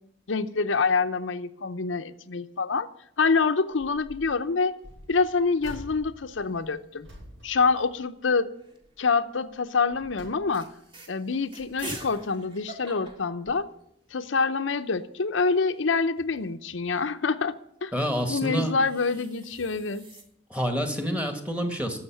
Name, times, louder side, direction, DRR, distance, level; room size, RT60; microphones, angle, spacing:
voice 1, 0.3-2.9 3.2-4.7 5.1-7.1 7.4-8.5 9.0-10.7 11.1-13.7 14.1-17.5 17.8-17.9 18.3-20.1, left 4 dB, 75° left, 0.7 m, -26 dB
sound 1, 3.7-4.4 4.8-8.5 8.8-9.1 9.6-10.9 11.4-12.4 13.0-13.2 13.5-13.6, equal, 80° right, 6.8 m, -48 dB
sound 2, 4.9-5.5 5.9-6.0 6.2-6.8 7.7-9.0 9.6-9.8 10.2-10.3 10.5-14.2 14.5-14.6 14.8-17.1 18.3-20.2, right 2 dB, 25° right, 2.0 m, -46 dB
voice 2, 17.9-18.7 20.5-22.0, equal, 5° right, 1.6 m, -28 dB
12.0 x 7.9 x 9.2 m
head